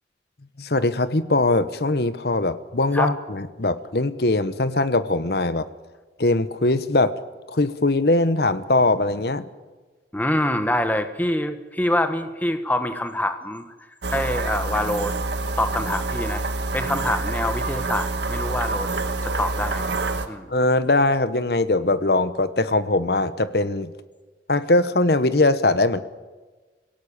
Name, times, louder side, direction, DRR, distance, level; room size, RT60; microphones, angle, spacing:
voice 1, 0.6-5.7 6.2-7.1 7.5-9.4 20.5-23.9 24.5-26.0, left 2 dB, 60° left, 13 dB, 1.1 m, -21 dB
voice 2, 10.1-13.7 14.1-15.2 15.6-16.4 16.7-18.9 19.2-20.0 20.3-20.5, left 1 dB, 10° left, 8 dB, 1.2 m, -25 dB
sound 1, 14.0-20.3, right 3 dB, 70° right, 1.5 m, -27 dB
24.5 x 17.0 x 8.7 m, 1.3 s
head